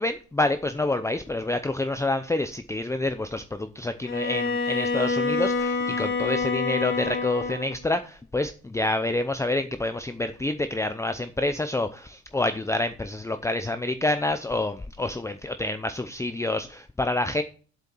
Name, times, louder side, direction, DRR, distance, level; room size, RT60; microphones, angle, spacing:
voice 1, 0.0-17.4, left 2 dB, 10° left, 9 dB, 0.6 m, -28 dB
Bowed string instrument, 4.0-7.8, left 4 dB, 40° left, 2.2 m, -27 dB
7.8 x 7.0 x 6.1 m, 0.39 s
cardioid pair, 110°, 31 cm